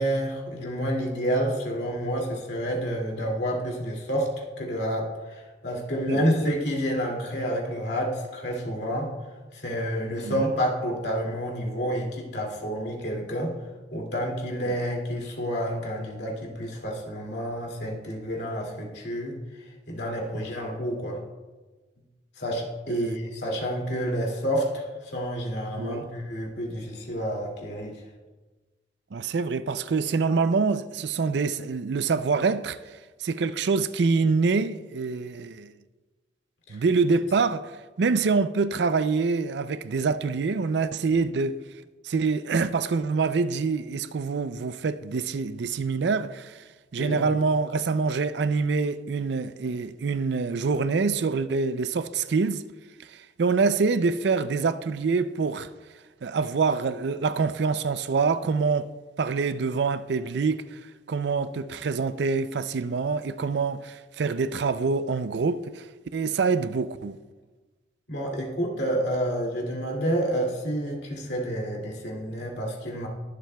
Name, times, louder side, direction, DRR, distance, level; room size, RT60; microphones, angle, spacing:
voice 1, 0.0-9.1 9.5-13.5 13.9-21.2 22.4-28.0 36.7-36.8 47.0-47.2 68.1-73.1, equal, 60° left, 2.4 m, -29 dB
voice 2, 22.9-23.2 25.8-26.1 29.1-35.7 36.7-41.6 42.0-46.6 46.9-52.6 53.0-55.7 56.2-58.9 59.2-60.8 61.1-65.9 66.1-67.2, right 4 dB, 65° right, 0.4 m, -26 dB
21.5 x 7.6 x 2.3 m
head